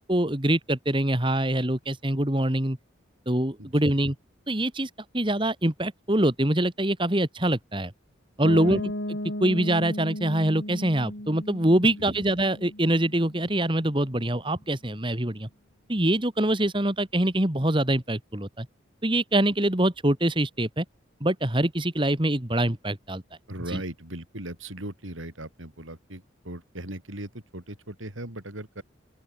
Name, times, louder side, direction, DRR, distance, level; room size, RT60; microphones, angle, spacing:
voice 1, 0.0-2.8 3.3-4.2 4.5-7.9 8.4-15.5 15.9-18.7 19.0-20.8 21.2-23.2 23.7-23.8, right 1 dB, 25° right, 2.1 m, -24 dB
Piano, 8.4-14.1, left 1 dB, 65° left, 7.2 m, -36 dB
voice 2, 8.4-8.8 23.5-28.8, right 1 dB, 85° right, 5.6 m, -38 dB
open air
head